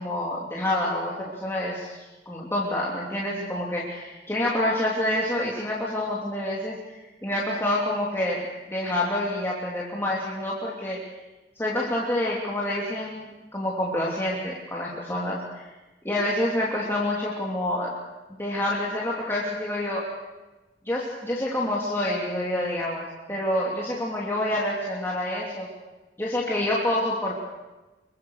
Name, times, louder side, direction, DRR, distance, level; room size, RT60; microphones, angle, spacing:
voice 1, 0.0-11.0 11.6-15.7 16.0-18.0 18.3-20.1 20.8-25.7 26.2-27.3, left 1 dB, 15° left, -5 dB, 3.0 m, -27 dB
26.5 x 23.5 x 6.6 m, 1.1 s
head